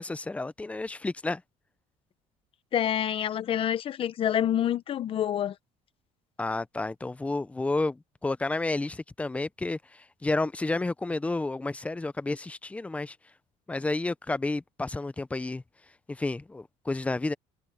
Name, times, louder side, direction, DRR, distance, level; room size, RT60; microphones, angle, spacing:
voice 1, 0.0-1.4 6.4-13.2 13.7-15.6 16.1-17.3, left 2 dB, 10° left, 0.6 m, -31 dB
voice 2, 2.7-5.6, left 10 dB, 40° left, 0.8 m, -27 dB
cardioid pair, 145°, 14 cm